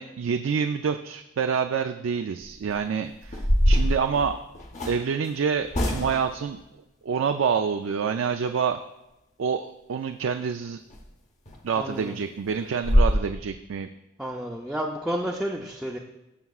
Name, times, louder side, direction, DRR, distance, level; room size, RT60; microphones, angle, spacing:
voice 1, 0.0-4.4 4.9-6.6 7.0-8.8 9.4-10.8 11.6-13.9, right 6 dB, 70° right, 7 dB, 0.4 m, -27 dB
sound 1, 2.4-2.7 3.2-5.0 5.7-6.4 10.9-11.0 11.5-11.6 12.0-12.1 12.4-12.5 12.8-13.2, equal, 35° left, 0.9 m, -23 dB
voice 2, 11.8-12.1 14.2-16.0, equal, 5° right, -2 dB, 0.5 m, -31 dB
16.5 x 6.9 x 2.4 m, 0.95 s
head